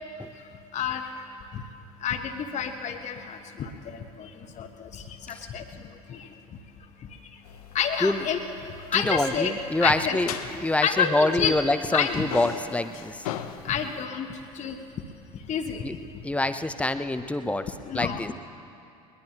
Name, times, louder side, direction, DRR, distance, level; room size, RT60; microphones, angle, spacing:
voice 1, 0.7-1.1 1.5-1.6 2.0-4.3 4.6-5.6 6.1-6.3 7.7-8.5 8.9-9.5 9.8-10.2 10.8-11.5 11.9-12.2 13.6-14.3 14.5-14.8 15.5-15.8 17.9-18.2, left 7 dB, 40° left, 4 dB, 1.2 m, -29 dB
sound 1, 7.4-11.7 11.9-14.0, left 10 dB, 70° left, 0.9 m, -40 dB
voice 2, 8.9-10.3 10.6-13.2 15.8-15.9 16.2-18.3, left 2 dB, 5° left, 10 dB, 0.8 m, -26 dB
21.0 x 20.5 x 3.0 m, 2.6 s
hypercardioid pair, 70°, 19 cm